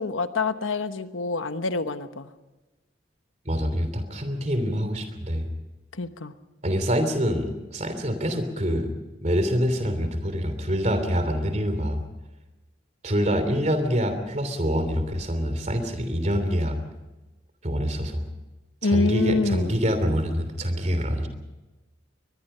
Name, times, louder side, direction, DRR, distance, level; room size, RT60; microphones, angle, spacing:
voice 1, 0.0-2.3 6.0-6.3 18.8-19.8, left 3 dB, 85° left, 10 dB, 1.1 m, -26 dB
voice 2, 3.4-5.4 6.6-8.9 9.2-12.0 13.0-16.8 17.6-18.2 18.8-21.3, equal, 35° right, 9 dB, 3.1 m, -25 dB
23.0 x 21.0 x 5.7 m, 1.1 s
head